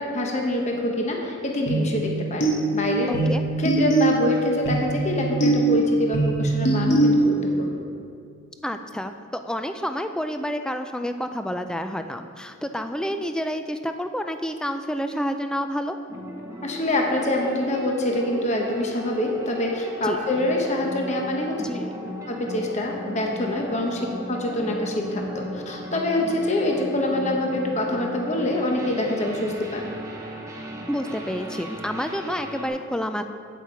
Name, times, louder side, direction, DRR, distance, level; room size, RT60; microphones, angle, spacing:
voice 1, 0.0-3.1 3.6-7.8 16.6-21.6 22.3-29.9, left 1 dB, 35° left, 1 dB, 0.9 m, -25 dB
sound 1, 1.7-7.6, right 2 dB, 55° left, 1.2 m, -22 dB
voice 2, 3.1-3.4 8.6-9.1 9.4-16.0 20.0-20.2 21.6-21.9 30.9-33.2, equal, 5° left, 7 dB, 0.3 m, -29 dB
sound 2, 16.1-32.7, left 1 dB, 15° right, 0.9 m, -36 dB
8.2 x 8.2 x 4.5 m, 2.3 s
head